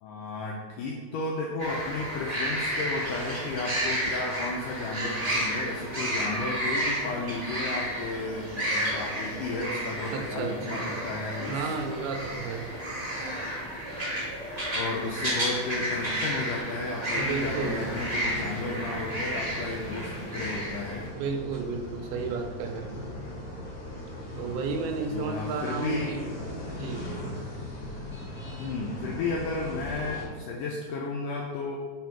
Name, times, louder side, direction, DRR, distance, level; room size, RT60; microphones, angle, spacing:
voice 1, 0.0-11.7 14.7-21.0 25.1-26.1 28.6-31.8, left 3 dB, 85° left, -1 dB, 1.9 m, -33 dB
sound 1, 1.6-21.0, right 1 dB, 40° right, 0.5 m, -32 dB
sound 2, 7.7-14.3, left 1 dB, 70° right, 1.8 m, -47 dB
voice 2, 10.1-10.8 11.5-12.7 17.1-17.8 21.1-23.2 24.4-26.2 26.7-27.0, right 4 dB, 85° right, 4 dB, 2.5 m, -32 dB
sound 3, 17.2-30.2, left 1 dB, 40° left, 1.4 m, -39 dB
5.8 x 5.0 x 4.5 m, 1.6 s
omnidirectional pair, 4.4 m